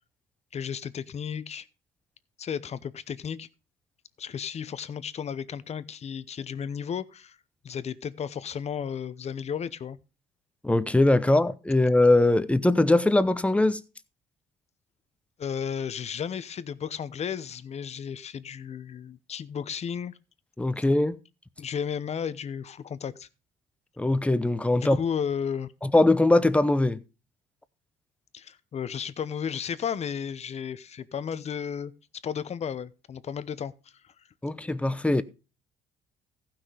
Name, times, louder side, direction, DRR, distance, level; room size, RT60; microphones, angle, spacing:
voice 1, 0.5-1.7 2.4-3.5 4.2-7.4 7.6-10.0 15.4-20.1 21.6-23.3 24.8-25.7 28.3-31.9 32.2-33.7 34.0-34.1, left 7 dB, 40° left, 0.8 m, -33 dB
voice 2, 10.6-13.8 20.6-21.2 24.0-25.0 25.8-27.0 34.4-35.2, left 2 dB, 5° left, 0.8 m, -21 dB
15.0 x 5.9 x 4.9 m
cardioid pair, 110°, 17 cm